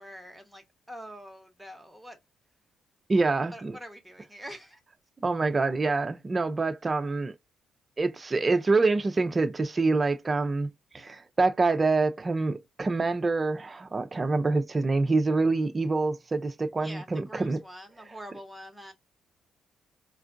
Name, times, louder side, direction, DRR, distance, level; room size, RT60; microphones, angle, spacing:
voice 1, 0.0-2.2 3.5-4.8 16.8-18.9, equal, 5° right, 1.1 m, -45 dB
voice 2, 3.1-3.8 5.2-7.3 8.0-17.6, right 3 dB, 30° right, 0.5 m, -26 dB
4.4 x 2.4 x 2.5 m
cardioid pair, 90°, 0 cm